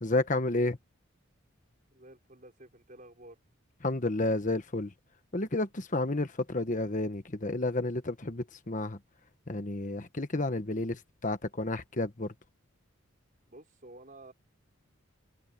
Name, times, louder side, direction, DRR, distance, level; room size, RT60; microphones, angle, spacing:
voice 1, 0.0-0.8 3.8-4.9 5.3-9.0 9.5-12.3, left 2 dB, 35° left, 1.3 m, -31 dB
voice 2, 1.9-3.4 13.5-14.3, right 1 dB, 40° right, 5.4 m, -51 dB
head